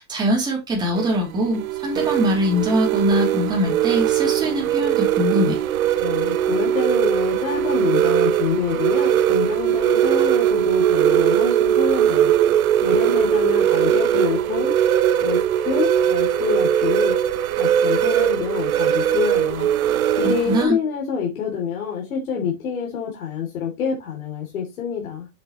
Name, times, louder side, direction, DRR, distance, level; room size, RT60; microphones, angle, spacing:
voice 1, 0.0-5.6 20.2-20.8, equal, 10° right, 3.2 m, -22 dB
sound 1, 0.9-20.7, right 10 dB, 80° right, 1.1 m, -20 dB
voice 2, 6.0-12.3 12.8-14.7 15.2-17.1 17.6-19.7 20.1-25.3, left 7 dB, 80° left, 3.3 m, -26 dB
7.7 x 7.6 x 3.1 m
supercardioid pair, 175°, 42 cm